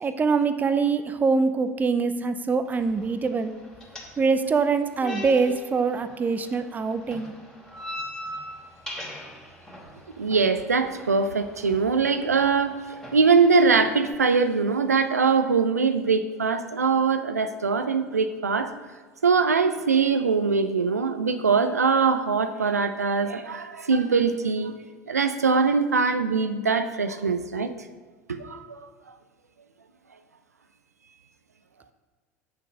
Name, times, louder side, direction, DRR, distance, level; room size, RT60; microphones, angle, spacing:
voice 1, 0.0-3.5 4.2-7.3, right 4 dB, 20° right, 10 dB, 0.7 m, -24 dB
sound 1, 2.7-14.1, left 1 dB, 5° left, 2.7 m, -42 dB
voice 2, 10.2-18.7 19.2-24.7 25.1-27.7 28.3-28.9, right 5 dB, 80° right, 10 dB, 0.5 m, -22 dB
8.5 x 6.9 x 6.3 m, 1.4 s
figure-of-eight pair, 75°, 8 cm